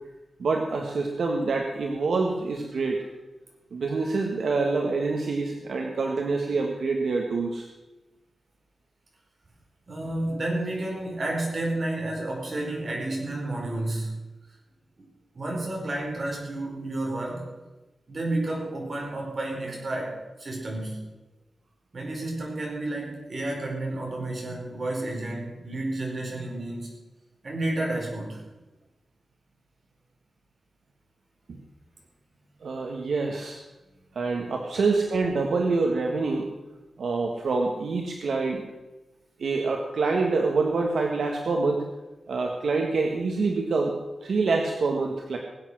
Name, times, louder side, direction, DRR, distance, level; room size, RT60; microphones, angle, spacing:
voice 1, 0.4-3.0 3.7-7.7 32.6-33.6 34.1-36.5 37.0-38.6 39.4-41.9 42.3-43.9 44.2-45.4, right 3 dB, 65° right, 1 dB, 1.6 m, -26 dB
voice 2, 9.9-14.1 15.3-17.5 18.1-21.0 21.9-26.9 27.4-28.4, right 2 dB, 35° right, -1 dB, 4.7 m, -31 dB
20.0 x 8.4 x 6.4 m, 1.1 s
wide cardioid pair, 175°, 0 cm